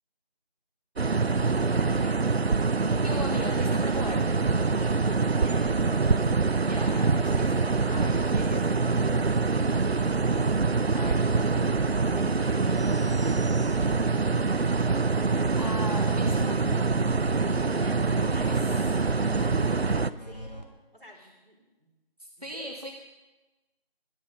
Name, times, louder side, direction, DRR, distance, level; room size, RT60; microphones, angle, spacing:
sound 1, 1.0-20.1, right 4 dB, 90° right, 0.7 m, -25 dB
voice 1, 1.6-2.6 4.7-6.5 9.2-10.3 11.6-11.8 12.4-13.9 17.2-22.0 22.4-22.7, equal, 60° right, -1 dB, 4.2 m, -47 dB
sound 2, 2.0-14.3 14.6-20.6, equal, 45° left, 1.5 m, -46 dB
voice 2, 3.0-4.3 6.6-8.8 10.9-11.6 15.6-16.8 18.4-18.8 21.1-21.3 22.2-22.9, equal, 40° right, 3 dB, 1.0 m, -38 dB
21.0 x 9.0 x 5.2 m, 1.1 s
figure-of-eight pair, 175°, 30 cm